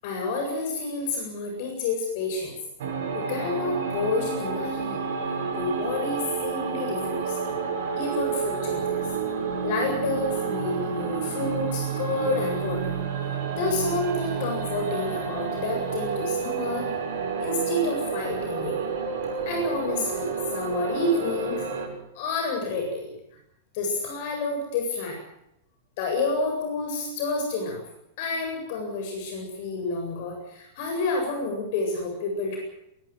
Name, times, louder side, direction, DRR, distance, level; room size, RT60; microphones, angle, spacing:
voice 1, 0.0-2.6 3.1-5.0 5.5-7.4 7.9-9.1 9.6-13.0 13.6-16.9 17.4-18.8 19.5-21.6 22.1-23.1 23.7-25.2 26.0-27.8 28.2-32.6, left 3 dB, 55° left, 2 dB, 7.9 m, -29 dB
sound 1, 2.8-21.9, right 6 dB, 60° right, 7.5 m, -30 dB
22.5 x 21.5 x 7.8 m, 0.81 s
figure-of-eight pair, 95°, 0 cm